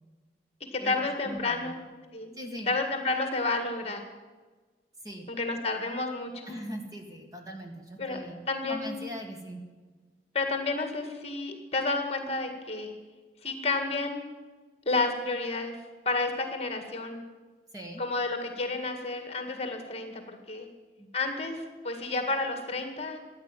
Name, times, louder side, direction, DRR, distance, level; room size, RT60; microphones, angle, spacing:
voice 1, 0.7-1.8 2.1-2.3 2.7-4.0 5.3-6.5 8.0-8.2 8.5-9.0 10.3-12.9 13.4-14.2 14.9-15.8 16.1-17.2 18.0-20.7 21.1-23.2, left 3 dB, 35° left, 5 dB, 1.9 m, -30 dB
voice 2, 1.2-1.7 2.3-2.7 5.0-5.3 6.5-8.4 8.7-9.6 17.7-18.0 21.0-21.1, equal, 20° right, 3 dB, 1.8 m, -40 dB
14.0 x 10.5 x 9.1 m, 1.3 s
head